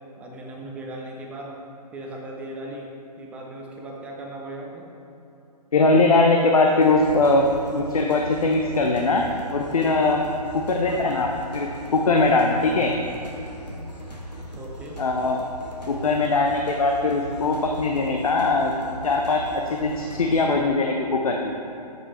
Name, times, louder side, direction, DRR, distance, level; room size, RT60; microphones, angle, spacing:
voice 1, 0.2-1.6 1.9-2.9 3.2-4.9 10.8-11.2 14.6-15.0, right 1 dB, 5° right, -1 dB, 0.6 m, -37 dB
voice 2, 5.7-7.5 7.7-9.2 9.5-10.2 10.5-12.9 15.0-15.4 15.9-18.7 19.0-21.5, left 3 dB, 60° left, 2 dB, 0.8 m, -21 dB
sound 1, 6.8-20.5, equal, 85° left, 1.7 m, -39 dB
10.5 x 8.1 x 3.1 m, 2.9 s
figure-of-eight pair, 135°, 21 cm